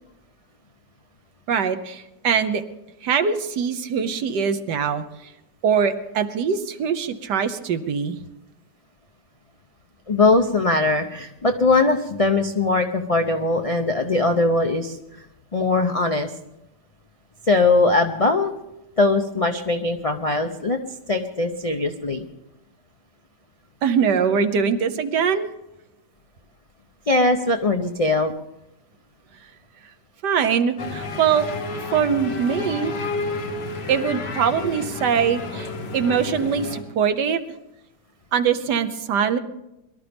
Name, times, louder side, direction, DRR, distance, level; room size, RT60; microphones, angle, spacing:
voice 1, 1.5-2.6 3.0-5.0 5.6-8.2 23.8-25.5 30.2-31.5 31.9-32.9 33.9-37.4 38.3-39.4, right 7 dB, 85° right, 9 dB, 1.5 m, -22 dB
voice 2, 10.1-15.0 15.5-16.3 17.5-18.5 19.0-20.8 21.1-22.3 27.1-28.3, left 2 dB, 60° left, 5 dB, 0.3 m, -20 dB
sound 1, 30.8-36.8, left 3 dB, 85° left, 2.2 m, -31 dB
22.5 x 12.5 x 3.5 m, 0.90 s
omnidirectional pair, 1.8 m